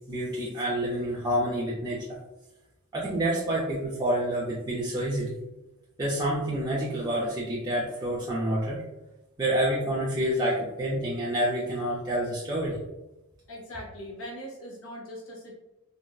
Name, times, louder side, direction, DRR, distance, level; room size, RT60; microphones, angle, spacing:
voice 1, 0.1-2.2 2.9-5.4 6.0-8.8 9.4-12.8, right 1 dB, 20° right, -7 dB, 0.5 m, -28 dB
voice 2, 13.5-15.6, equal, 70° left, -2 dB, 0.6 m, -40 dB
3.8 x 2.1 x 2.3 m, 0.99 s
head